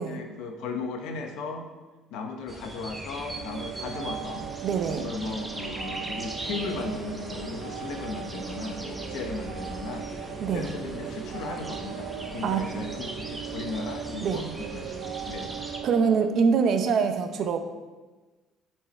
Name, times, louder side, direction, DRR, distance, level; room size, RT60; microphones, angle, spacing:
voice 1, 0.0-1.7 2.1-4.5 5.0-15.5, left 4 dB, 65° left, 5 dB, 0.9 m, -36 dB
sound 1, 2.5-15.8, right 1 dB, 5° right, 0.7 m, -40 dB
sound 2, 3.3-16.3, right 10 dB, 90° right, 0.4 m, -38 dB
voice 2, 4.6-5.1 10.4-10.7 12.4-12.7 14.2-14.5 15.8-17.6, right 6 dB, 40° right, 7 dB, 0.6 m, -24 dB
ambience metro wagon city Moscow, 6.5-13.0, left 1 dB, 30° left, 2.4 m, -46 dB
8.9 x 4.6 x 4.2 m, 1.2 s
cardioid pair, 175°, 0 cm